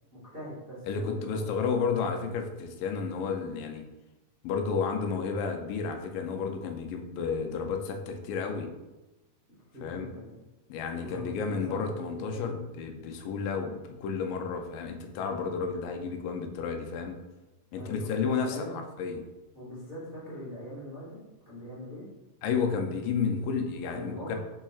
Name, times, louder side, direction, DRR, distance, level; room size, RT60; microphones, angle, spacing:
voice 1, 0.1-1.5 9.7-10.3 10.9-12.6 17.7-18.8 19.5-22.0 23.8-24.3, equal, 70° right, -9 dB, 0.5 m, -42 dB
voice 2, 0.9-3.9 4.4-8.7 9.8-10.1 10.7-17.2 17.7-18.6 19.0-19.2 22.4-24.4, left 5 dB, 85° left, 4 dB, 2.3 m, -31 dB
5.3 x 4.2 x 2.3 m, 1.0 s
omnidirectional pair, 3.8 m